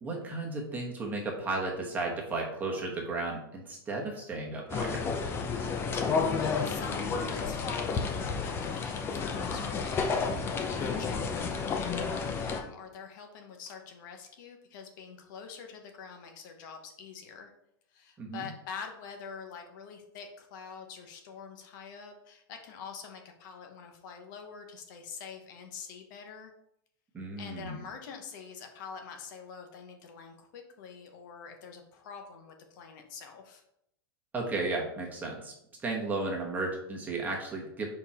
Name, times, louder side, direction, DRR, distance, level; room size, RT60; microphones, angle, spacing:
voice 1, 0.0-5.0 18.2-18.4 27.1-27.8 34.3-35.5 35.8-37.9, right 3 dB, 15° right, -1 dB, 1.1 m, -34 dB
sound 1, 4.7-12.6, left 5 dB, 20° left, 0.6 m, -31 dB
voice 2, 6.0-17.5 17.9-26.5 27.4-33.6, left 6 dB, 55° left, 4 dB, 1.1 m, -45 dB
5.1 x 4.6 x 4.2 m, 0.76 s
supercardioid pair, 155°, 13 cm